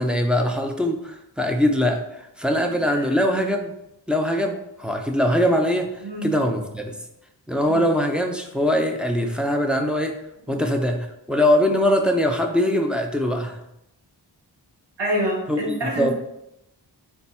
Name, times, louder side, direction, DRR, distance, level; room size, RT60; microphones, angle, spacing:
voice 1, 0.0-3.7 4.1-7.0 7.5-10.1 10.5-13.6 15.5-16.1, equal, ahead, 3 dB, 0.3 m, -22 dB
voice 2, 15.0-16.1, equal, 70° right, -4 dB, 1.0 m, -26 dB
3.4 x 2.2 x 4.1 m, 0.83 s
wide cardioid pair, 85°, 44 cm